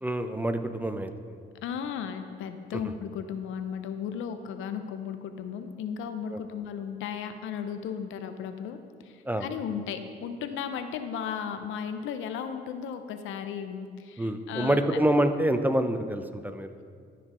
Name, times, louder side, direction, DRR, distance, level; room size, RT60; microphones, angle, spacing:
voice 1, 0.0-1.1 6.3-6.4 9.3-9.5 14.2-16.7, right 1 dB, 10° right, 8 dB, 0.4 m, -26 dB
voice 2, 1.6-15.0, left 7 dB, 85° left, 8 dB, 0.6 m, -35 dB
13.5 x 4.6 x 3.8 m, 2.2 s
cardioid pair, 90°, 20 cm